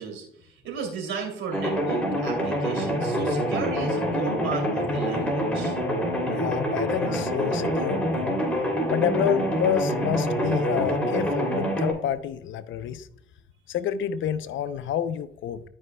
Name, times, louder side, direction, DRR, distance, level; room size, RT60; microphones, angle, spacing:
voice 1, 0.0-5.8, right 6 dB, 75° right, 2 dB, 2.8 m, -34 dB
sound 1, 1.5-11.9, equal, 5° left, 2.9 m, -26 dB
voice 2, 6.3-8.4 8.9-13.1 13.7-15.6, left 9 dB, 75° left, 12 dB, 0.6 m, -28 dB
12.5 x 5.1 x 2.2 m, 0.69 s
cardioid pair, 90°, 20 cm